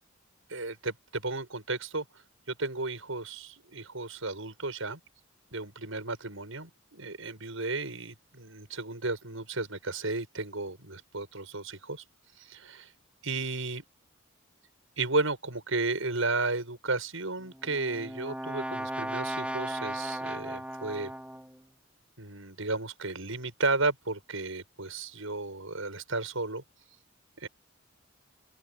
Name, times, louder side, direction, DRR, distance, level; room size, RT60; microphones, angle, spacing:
voice 1, 0.5-2.0 2.5-5.0 5.5-12.0 12.4-12.9 13.2-13.8 15.0-21.1 22.2-26.6 27.4-27.5, right 3 dB, 75° right, 7.5 m, -33 dB
Brass instrument, 17.4-21.6, right 1 dB, 5° right, 2.5 m, -36 dB
open air
head